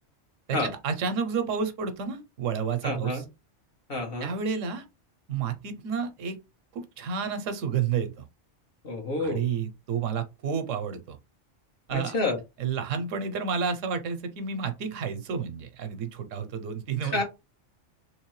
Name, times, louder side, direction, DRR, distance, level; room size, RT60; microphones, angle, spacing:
voice 1, 0.5-3.2 4.2-4.8 5.3-6.4 6.7-8.2 9.2-11.2 11.9-12.1 12.6-17.2, right 6 dB, 80° right, 1.0 m, -30 dB
voice 2, 2.8-3.2 3.9-4.3 8.8-9.4 11.9-12.4 17.0-17.2, left 2 dB, 50° left, 1.4 m, -29 dB
3.3 x 3.0 x 3.1 m
omnidirectional pair, 1.3 m